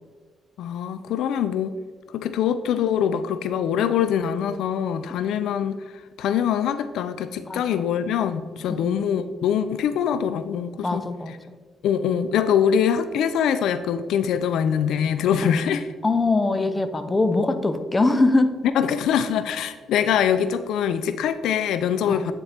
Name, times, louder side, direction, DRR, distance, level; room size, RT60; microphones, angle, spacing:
voice 1, 0.6-1.7 2.1-5.8 6.2-11.0 11.3-11.4 11.8-15.9 18.8-22.3, left 8 dB, 80° left, 11 dB, 0.3 m, -23 dB
voice 2, 7.5-7.9 8.7-9.0 10.8-11.3 15.4-15.5 16.0-18.5 22.1-22.2, left 2 dB, 20° left, 9 dB, 0.6 m, -22 dB
9.6 x 4.3 x 3.3 m, 1.5 s
cardioid pair, 90°, 0 cm